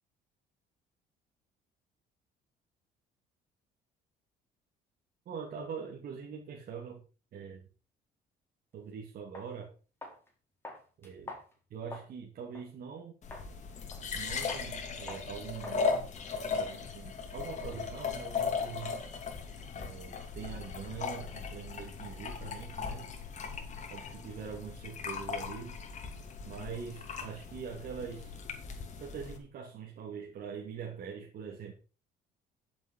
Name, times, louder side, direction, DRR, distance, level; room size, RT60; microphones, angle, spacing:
voice 1, 5.3-7.0 7.3-7.7 8.7-9.7 11.0-11.3 11.7-13.2 14.1-15.8 16.5-18.9 19.7-23.1 23.9-25.8 26.4-28.3 29.0-31.7, right 6 dB, 60° right, 0 dB, 2.7 m, -43 dB
sound 1, 8.8-8.9 9.3-9.5 10.0-10.3 10.6-12.2 12.5-12.7 13.3-13.5 13.9-14.2 14.5-14.7 15.1-15.3 15.6-15.8 16.1-18.1, left 2 dB, 15° left, 4.2 m, -48 dB
sound 2, 13.2-29.4, left 5 dB, 45° left, 2.9 m, -38 dB
11.5 x 7.7 x 5.6 m, 0.36 s
cardioid pair, 110°, 17 cm